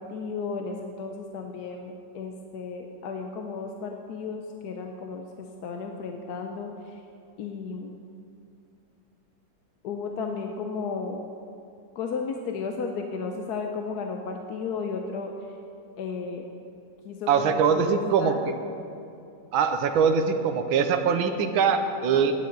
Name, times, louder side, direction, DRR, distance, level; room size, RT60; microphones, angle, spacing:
voice 1, 0.0-7.0 7.4-8.0 9.8-11.3 11.9-15.3 16.0-16.5 17.0-18.4, left 5 dB, 65° left, 3 dB, 1.1 m, -34 dB
voice 2, 17.3-18.3 19.5-22.3, right 6 dB, 85° right, 7 dB, 1.6 m, -22 dB
15.0 x 11.0 x 3.9 m, 2.7 s
omnidirectional pair, 2.2 m